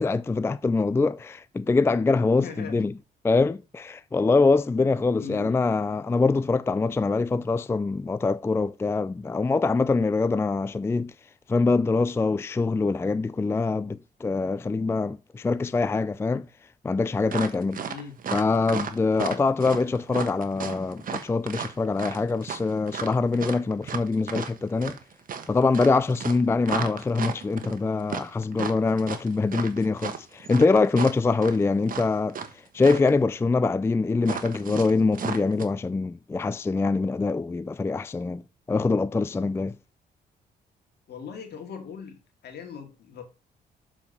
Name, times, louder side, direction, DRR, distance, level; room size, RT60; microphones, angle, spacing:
voice 1, 0.0-2.9 3.2-11.1 11.5-16.5 16.8-17.8 18.3-25.0 25.5-32.4 32.7-38.4 38.7-39.8, left 3 dB, 15° left, 0.3 m, -24 dB
voice 2, 2.4-2.8 5.2-5.6 17.9-18.2 19.1-19.3 41.1-43.2, left 6 dB, 70° left, 2.3 m, -40 dB
sound 1, 17.3-32.5 32.8-33.1 34.2-35.6, right 7 dB, 50° right, 1.3 m, -34 dB
7.2 x 4.9 x 5.4 m
cardioid pair, 85°, 17 cm